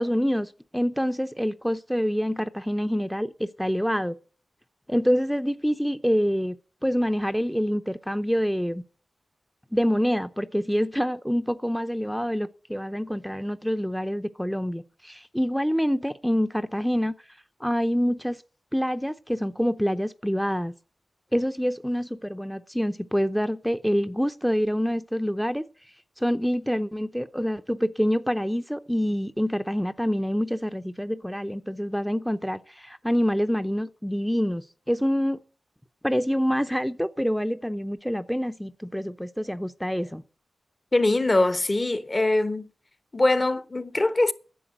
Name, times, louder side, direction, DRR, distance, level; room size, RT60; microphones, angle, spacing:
voice 1, 0.0-4.2 4.9-6.5 6.8-8.8 9.7-17.1 17.6-18.4 18.7-20.7 21.3-25.6 26.2-35.4 36.0-40.2, equal, ahead, 0.6 m, -26 dB
voice 2, 40.9-42.7 43.1-44.3, left 2 dB, 40° left, 1.1 m, -22 dB
10.0 x 7.1 x 9.0 m
cardioid pair, 45°, 0 cm